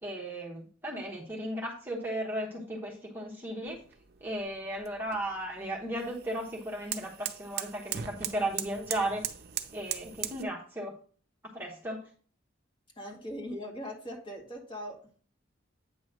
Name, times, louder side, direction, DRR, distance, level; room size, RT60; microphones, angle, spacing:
voice 1, 0.0-3.8 4.2-9.3 9.7-10.9 11.5-12.0, right 1 dB, 10° right, -2 dB, 1.1 m, -35 dB
sound 1, 3.7-10.4, right 10 dB, 55° right, 0.6 m, -40 dB
voice 2, 13.0-15.0, equal, 25° left, 0 dB, 1.7 m, -40 dB
8.7 x 3.0 x 6.1 m, 0.43 s
head